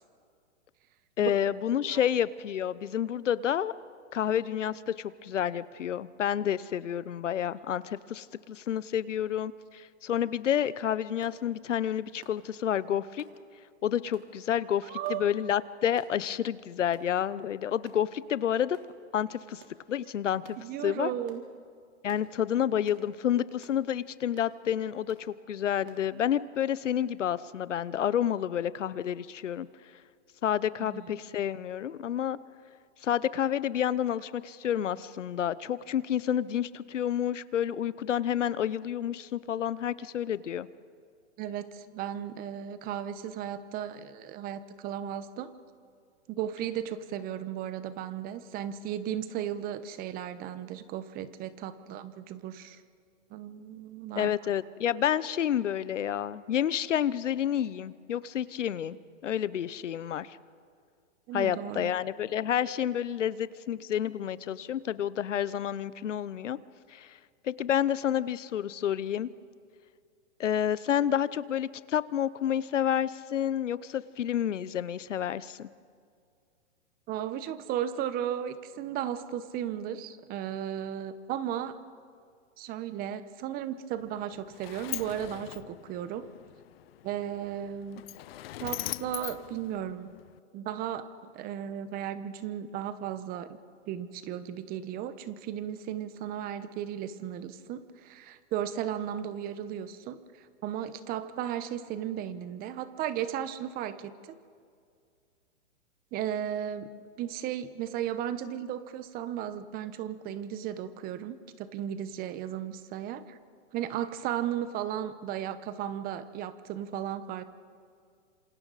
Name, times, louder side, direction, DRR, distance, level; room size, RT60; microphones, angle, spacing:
voice 1, 1.2-3.7 4.1-13.2 13.8-18.8 19.1-19.6 19.9-20.6 20.8-21.1 22.0-29.7 30.4-32.4 33.0-40.7 54.2-60.4 61.3-66.6 66.9-67.1 67.4-69.3 70.4-75.7, left 10 dB, 85° left, 18 dB, 0.9 m, -29 dB
sound 1, 11.2-11.4 12.2-12.4 13.2-13.4 14.1-14.3 15.0-15.2 16.0-16.2 16.9-17.1 17.8-18.0 18.7-18.9 19.6-19.8 20.4-20.6 21.3-21.5 22.1-22.3 22.9-23.1 23.6-23.8 24.3-24.5 25.1-25.3 25.9-26.0, right 8 dB, 50° right, 3.5 m, -56 dB
voice 2, 14.8-15.4 20.6-21.4 30.8-31.0 41.4-45.5 46.3-52.8 53.3-54.3 61.3-61.9 77.1-81.8 82.6-86.3 87.0-88.0 88.6-90.1 90.5-93.6 93.9-104.4 106.1-106.9 107.2-113.4 113.7-117.4, right 10 dB, 25° right, 13 dB, 1.0 m, -35 dB
Sliding door, 84.0-90.4, left 15 dB, 55° left, 0.5 m, -41 dB
27.0 x 27.0 x 4.1 m, 2.2 s
hypercardioid pair, 135°, 36 cm